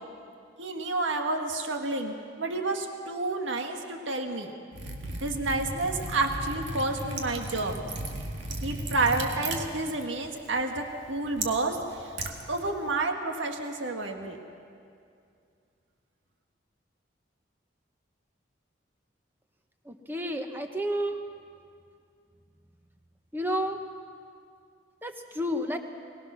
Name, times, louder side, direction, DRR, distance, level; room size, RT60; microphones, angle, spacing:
voice 1, 0.6-4.5 5.2-7.8 8.6-12.1 12.5-14.4, right 2 dB, 85° right, 4 dB, 1.7 m, -30 dB
Liquid, 4.7-13.0, right 2 dB, 70° right, 1.9 m, -37 dB
voice 2, 19.8-21.2 23.3-23.8 25.0-25.8, equal, 10° right, 5 dB, 1.1 m, -30 dB
23.0 x 19.0 x 6.2 m, 2.4 s
head